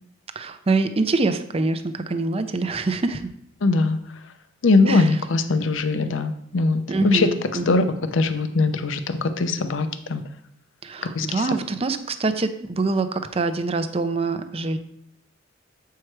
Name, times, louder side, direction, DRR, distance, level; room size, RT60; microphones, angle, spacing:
voice 1, 0.4-3.3 4.9-5.1 6.9-7.8 10.8-14.8, right 3 dB, 30° right, 9 dB, 0.5 m, -25 dB
voice 2, 3.6-4.0 4.6-7.3 7.6-10.2 11.1-11.5, left 3 dB, 80° left, 10 dB, 0.6 m, -21 dB
7.5 x 4.7 x 4.6 m, 0.71 s
head